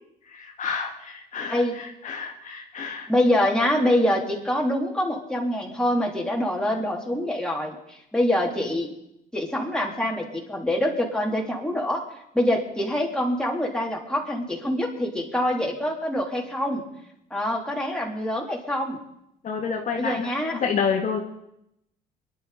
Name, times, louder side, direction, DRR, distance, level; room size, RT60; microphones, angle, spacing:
voice 1, 0.3-3.1 19.4-21.2, left 6 dB, 50° left, 1 dB, 1.9 m, -29 dB
voice 2, 3.1-8.9 9.3-12.1 12.3-16.8 17.3-19.0 19.9-20.6, left 1 dB, 5° left, -1 dB, 3.6 m, -25 dB
26.0 x 11.0 x 4.2 m, 0.81 s
cardioid pair, 110°, 17 cm